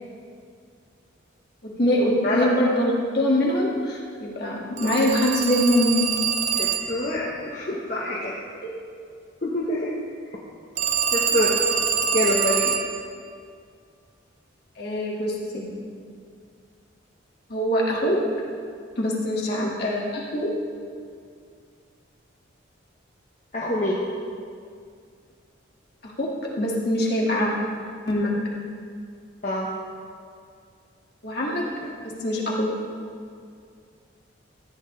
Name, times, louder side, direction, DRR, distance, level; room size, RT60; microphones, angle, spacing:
voice 1, 1.6-5.9 8.6-8.7 14.8-15.6 17.5-18.2 19.0-20.5 26.0-26.3 26.6-27.5 28.1-28.3 31.2-31.6 32.0-32.7, equal, 55° left, -4 dB, 2.0 m, -23 dB
Telephone, 4.8-7.1 10.8-13.0, right 7 dB, 35° right, 0.5 m, -25 dB
voice 2, 6.5-8.4 9.4-10.0 11.1-11.6 12.1-12.7 19.5-19.7 23.5-24.0 29.4-29.7, left 1 dB, 40° left, -5 dB, 1.0 m, -26 dB
14.5 x 8.8 x 3.3 m, 2.2 s
head